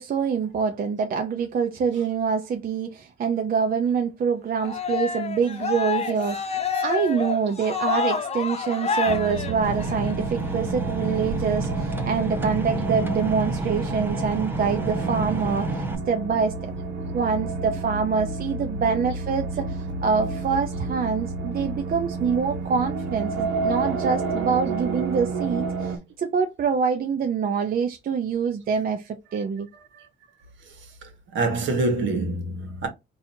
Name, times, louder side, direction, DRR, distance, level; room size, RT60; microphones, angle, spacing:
voice 1, 0.0-16.7 17.1-29.7, right 6 dB, 50° right, 0.6 m, -25 dB
Cheering, 4.6-10.1, left 5 dB, 30° left, 0.8 m, -28 dB
sound 1, 9.1-26.0, right 3 dB, 85° right, 1.0 m, -30 dB
sound 2, 9.6-16.0, right 2 dB, 10° right, 0.9 m, -30 dB
voice 2, 31.3-32.9, right 2 dB, 70° right, 1.4 m, -25 dB
4.0 x 2.6 x 2.7 m
cardioid pair, 90°, 20 cm